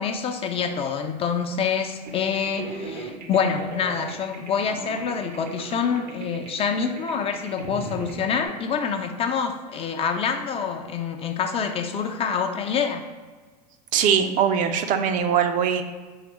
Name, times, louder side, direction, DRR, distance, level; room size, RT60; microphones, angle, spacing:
voice 1, 0.0-13.0, left 6 dB, 30° left, 6 dB, 0.4 m, -26 dB
sound 1, 2.0-8.5, right 3 dB, 80° right, 0.8 m, -38 dB
voice 2, 13.9-15.8, right 8 dB, 40° right, 7 dB, 0.4 m, -21 dB
4.8 x 3.4 x 3.0 m, 1.4 s
hypercardioid pair, 100°, 21 cm